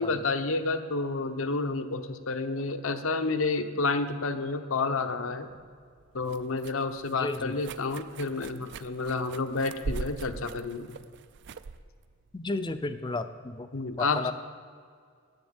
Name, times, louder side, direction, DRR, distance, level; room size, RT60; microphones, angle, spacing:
voice 1, 0.0-5.5 6.1-11.0 13.7-14.3, left 3 dB, 70° left, 9 dB, 0.8 m, -30 dB
sound 1, 5.5-13.3, right 4 dB, 55° right, 0.4 m, -42 dB
voice 2, 7.2-7.6 12.3-13.7 14.0-14.3, left 2 dB, 20° left, 11 dB, 0.5 m, -33 dB
10.5 x 8.0 x 8.7 m, 2.1 s
head